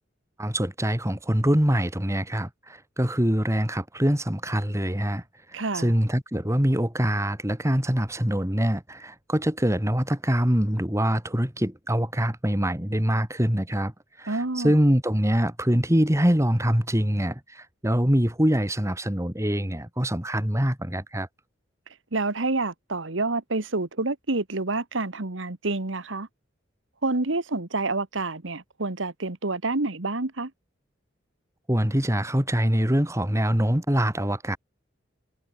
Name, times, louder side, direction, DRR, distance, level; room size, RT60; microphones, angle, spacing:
voice 1, 0.4-5.2 5.5-13.9 14.2-21.3 31.7-34.6, equal, 15° right, 3.1 m, -24 dB
voice 2, 5.5-5.9 14.3-14.7 22.1-26.3 27.0-30.5, right 3 dB, 75° right, 1.6 m, -28 dB
head